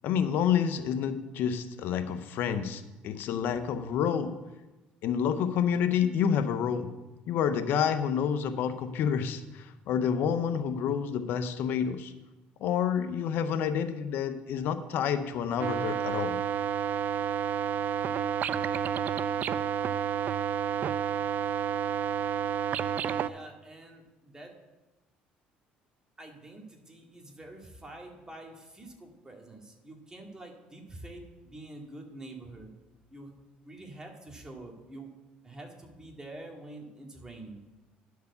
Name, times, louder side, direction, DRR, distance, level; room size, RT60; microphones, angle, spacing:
voice 1, 0.0-4.3 5.0-6.9 7.3-12.1 12.6-16.4, left 8 dB, 70° left, 10 dB, 0.7 m, -29 dB
sound 1, 15.6-23.3, right 8 dB, 50° right, 0.4 m, -30 dB
voice 2, 23.2-24.5 26.2-32.7 33.1-33.3 33.6-35.1 35.4-37.6, right 2 dB, 20° right, 1 dB, 2.1 m, -46 dB
10.5 x 4.7 x 6.7 m, 1.1 s
supercardioid pair, 90°, 4 cm